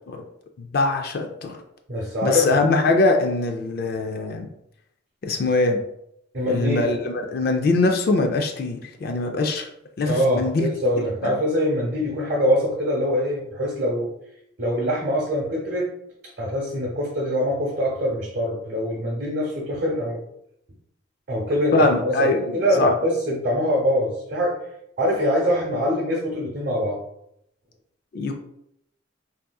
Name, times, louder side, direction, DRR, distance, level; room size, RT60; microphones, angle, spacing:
voice 1, 0.6-1.6 2.2-4.5 5.2-5.8 6.5-9.7 10.0-10.7 11.2-11.4 21.7-22.9 28.1-28.4, left 3 dB, 50° left, 5 dB, 0.3 m, -22 dB
voice 2, 1.9-2.5 6.3-6.9 10.1-14.1 14.6-15.9 16.4-20.2 21.3-24.6 25.0-27.0, equal, 55° right, -6 dB, 0.9 m, -23 dB
3.5 x 2.7 x 2.2 m, 0.76 s
head